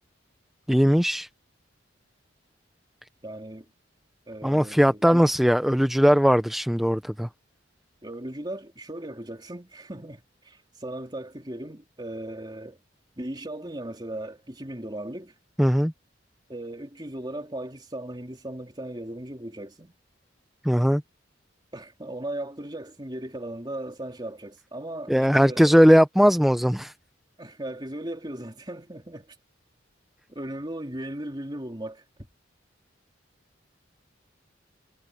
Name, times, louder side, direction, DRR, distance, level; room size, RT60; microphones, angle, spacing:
voice 1, 0.7-1.3 4.4-7.3 15.6-15.9 20.6-21.0 25.1-26.9, equal, ahead, 0.5 m, -19 dB
voice 2, 3.2-3.7 4.3-5.2 8.0-12.8 13.2-15.3 16.5-19.9 21.7-25.6 27.4-29.3 30.3-32.0, right 1 dB, 20° right, 3.2 m, -37 dB
head